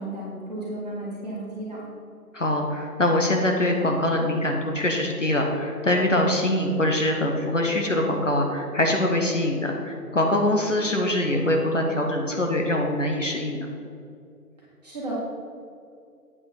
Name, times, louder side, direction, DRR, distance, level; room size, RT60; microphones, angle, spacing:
voice 1, 0.0-1.8 14.8-15.2, right 1 dB, 25° right, -7 dB, 2.2 m, -33 dB
voice 2, 2.3-13.7, left 1 dB, 50° left, 1 dB, 1.0 m, -23 dB
8.3 x 5.3 x 5.4 m, 2.4 s
figure-of-eight pair, 165°, 47 cm